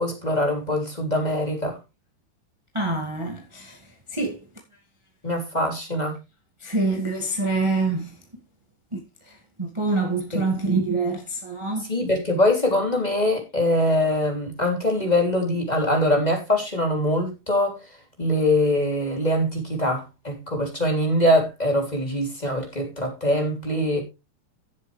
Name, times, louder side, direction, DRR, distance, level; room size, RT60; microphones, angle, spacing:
voice 1, 0.0-1.8 5.2-6.2 10.3-10.4 11.9-17.8 18.2-24.0, left 1 dB, 10° left, 2.7 m, -23 dB
voice 2, 2.7-3.8 4.1-4.4 6.6-8.2 8.9-9.0 9.2-11.9, right 3 dB, 15° right, 1.1 m, -26 dB
16.0 x 7.6 x 3.3 m
omnidirectional pair, 4.5 m